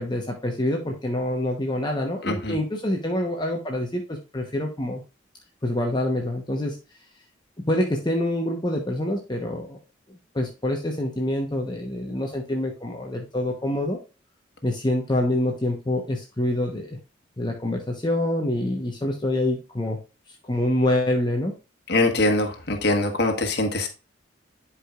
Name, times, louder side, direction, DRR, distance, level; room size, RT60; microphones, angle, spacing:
voice 1, 0.0-5.0 5.6-6.8 7.7-9.8 10.1-14.0 14.6-17.0 17.4-20.0 20.4-21.5, left 1 dB, 20° left, 1 dB, 1.0 m, -26 dB
voice 2, 2.2-2.6 21.9-23.9, left 2 dB, 55° left, 4 dB, 1.5 m, -23 dB
11.0 x 4.9 x 2.4 m, 0.30 s
head